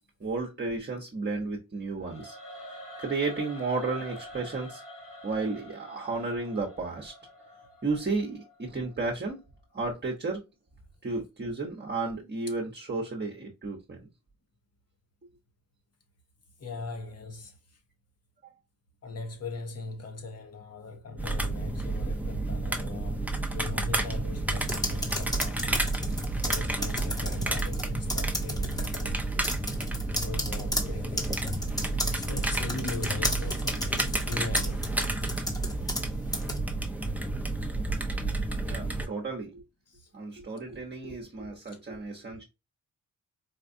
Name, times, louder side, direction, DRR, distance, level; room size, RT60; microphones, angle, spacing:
voice 1, 0.2-4.8 5.2-7.1 7.8-9.4 9.7-10.4 11.0-14.1 38.7-39.6 40.1-42.4, right 3 dB, 35° right, 1.0 m, -33 dB
Singing / Musical instrument, 2.0-9.1, equal, 80° left, 2.3 m, -46 dB
voice 2, 16.6-17.8 19.0-25.8 26.4-29.2 30.2-31.5 32.0-35.2 39.9-40.1 41.7-41.8, left 3 dB, 55° left, 1.1 m, -40 dB
sound 1, 21.2-39.1, right 2 dB, 5° right, 0.7 m, -30 dB
sound 2, 24.6-27.8 28.1-29.0 29.4-36.1 36.3-36.6, left 1 dB, 10° left, 1.1 m, -33 dB
4.4 x 2.4 x 2.5 m
wide cardioid pair, 105°, 31 cm